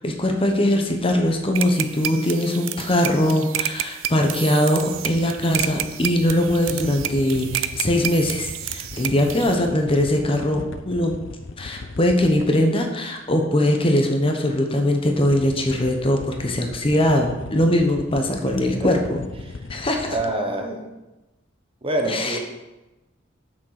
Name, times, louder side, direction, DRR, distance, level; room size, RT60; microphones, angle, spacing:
voice 1, 0.0-11.2 11.6-19.2 19.7-20.1 22.1-22.4, left 1 dB, 30° left, 3 dB, 0.9 m, -21 dB
sound 1, 1.5-9.5, right 11 dB, 85° right, 0.5 m, -30 dB
sound 2, 4.9-12.7 15.0-20.3, left 3 dB, 65° left, 0.6 m, -39 dB
voice 2, 18.4-18.9 19.4-19.5 20.1-20.8 21.8-22.4, right 1 dB, 30° right, 2 dB, 1.2 m, -26 dB
7.4 x 6.3 x 5.8 m, 1.1 s
head